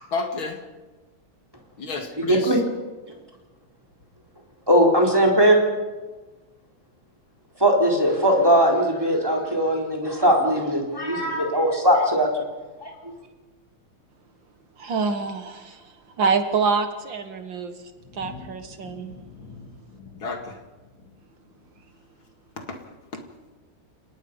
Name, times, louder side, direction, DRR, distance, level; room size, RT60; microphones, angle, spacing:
voice 1, 0.1-0.6 1.8-2.6 18.2-18.5 18.8-19.7 20.0-20.6 22.6-22.8 23.1-23.2, left 3 dB, 70° left, 4 dB, 2.9 m, -32 dB
voice 2, 2.2-2.6 4.7-5.6 7.6-12.3 12.8-12.9, equal, 10° right, -1 dB, 4.0 m, -19 dB
voice 3, 14.8-17.7 18.1-19.1, right 5 dB, 60° right, 8 dB, 2.0 m, -26 dB
29.5 x 19.0 x 5.4 m, 1.2 s
omnidirectional pair, 2.4 m